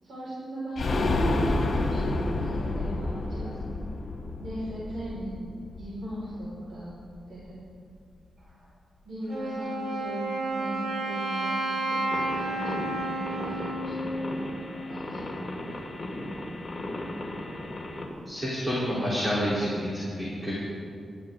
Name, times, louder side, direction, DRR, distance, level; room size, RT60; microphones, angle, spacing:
voice 1, 0.0-1.3 1.8-3.8 4.4-5.4 5.8-7.0 7.3-7.6 9.0-14.3 14.9-15.7, right 1 dB, 75° right, -9 dB, 5.0 m, -39 dB
sound 1, 0.8-6.4 6.7-6.8 7.1-7.2, left 2 dB, 55° left, 2.4 m, -29 dB
Wind instrument woodwind instrument, 9.3-15.0, right 1 dB, 45° right, 4.5 m, -31 dB
sound 2, 12.1-18.1, left 1 dB, 20° left, 2.6 m, -36 dB
voice 2, 18.3-20.5, equal, 15° right, -8 dB, 3.8 m, -28 dB
26.0 x 13.0 x 3.8 m, 2.3 s
wide cardioid pair, 160°, 0 cm